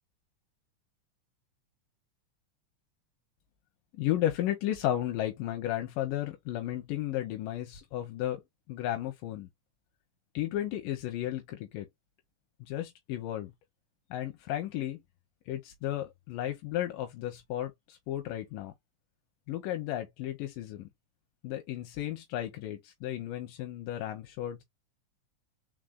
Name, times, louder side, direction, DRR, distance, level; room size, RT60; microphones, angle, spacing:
voice 1, 3.9-8.4 8.7-9.5 10.3-11.9 12.6-13.5 14.1-15.0 15.5-18.7 19.5-20.9 21.4-24.6, left 13 dB, 90° left, 2.5 m, -34 dB
4.9 x 4.0 x 2.3 m
omnidirectional pair, 3.8 m